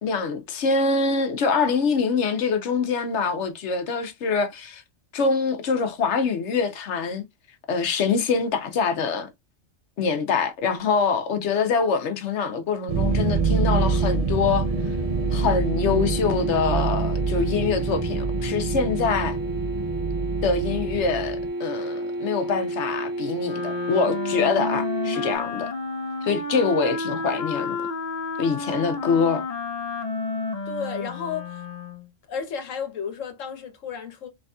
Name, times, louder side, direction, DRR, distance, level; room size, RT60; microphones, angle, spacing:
voice 1, 0.0-4.8 5.1-7.2 7.7-9.3 10.0-14.7 15.3-19.4 20.4-25.7 26.2-27.8 28.4-29.4, left 5 dB, 70° left, 1.1 m, -24 dB
sound 1, 12.9-21.5, right 5 dB, 40° right, 0.5 m, -26 dB
sound 2, 13.1-25.4, right 1 dB, 60° right, 1.5 m, -31 dB
Wind instrument woodwind instrument, 23.4-32.1, left 3 dB, 50° left, 0.5 m, -31 dB
voice 2, 30.7-31.6 32.3-34.3, left 6 dB, 85° left, 1.2 m, -33 dB
3.9 x 3.4 x 2.2 m
omnidirectional pair, 1.3 m